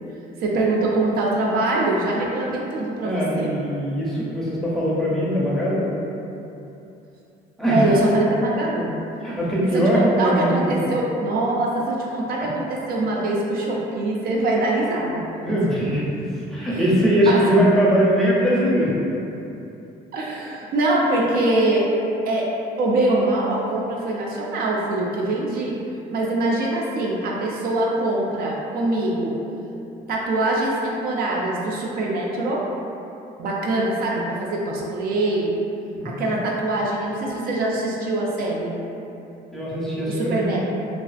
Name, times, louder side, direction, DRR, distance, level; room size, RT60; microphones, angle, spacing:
voice 1, 0.4-3.6 7.7-9.0 9.7-15.6 16.7-16.8 17.3-17.4 20.1-25.8 26.1-29.5 30.1-32.7 33.4-35.6 36.0-38.8 40.1-40.6, right 2 dB, 60° right, -3 dB, 0.4 m, -23 dB
voice 2, 3.0-6.0 7.6-7.9 9.2-10.8 15.4-19.0 36.0-36.3 39.5-40.6, equal, ahead, -8 dB, 0.5 m, -21 dB
2.4 x 2.4 x 2.4 m, 2.8 s
cardioid pair, 110°, 17 cm